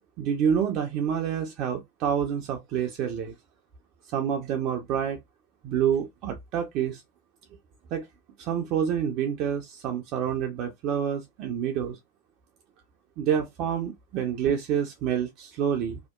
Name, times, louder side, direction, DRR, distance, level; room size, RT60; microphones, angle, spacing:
voice 1, 0.2-3.3 4.1-5.2 5.6-7.0 7.9-8.1 8.4-12.0 13.2-16.0, right 8 dB, 40° right, 0.5 m, -28 dB
2.8 x 2.0 x 2.3 m
figure-of-eight pair, 90°, 0 cm